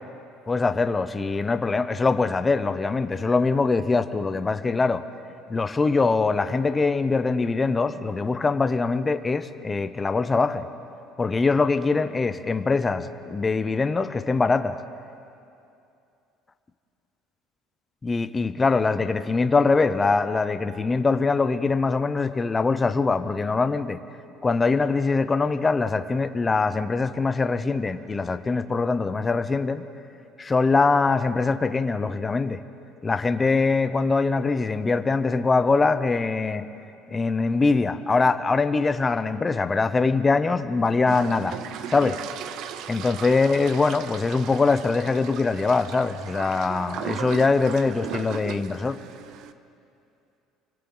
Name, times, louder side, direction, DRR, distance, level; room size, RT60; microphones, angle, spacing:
voice 1, 0.5-5.0 5.5-10.7 11.2-14.8 18.0-24.0 24.4-29.8 30.4-32.6 33.0-36.6 37.1-41.6 41.9-42.2 42.9-49.0, left 4 dB, 15° left, 10 dB, 0.7 m, -23 dB
sound 1, 41.1-49.5, right 9 dB, 60° right, 0.8 m, -37 dB
29.0 x 24.5 x 3.9 m, 2.6 s
cardioid pair, 150°, 0 cm